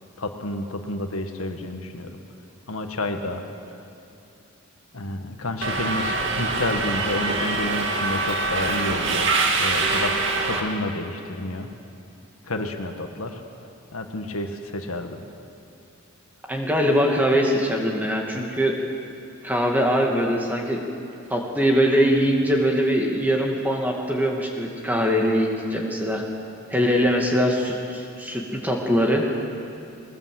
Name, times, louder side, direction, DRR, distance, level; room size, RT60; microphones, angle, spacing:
voice 1, 0.2-2.1 2.7-3.4 4.9-9.3 9.6-10.1 10.4-11.7 12.4-13.4 13.9-15.2, left 1 dB, 75° left, 5 dB, 1.8 m, -30 dB
Subway metro underground, 5.6-10.6, right 3 dB, 55° right, 2.3 m, -24 dB
voice 2, 16.5-18.7 19.4-20.8 21.3-26.2 26.7-29.2, equal, 10° right, 0 dB, 2.2 m, -22 dB
21.0 x 19.5 x 7.8 m, 2.6 s
head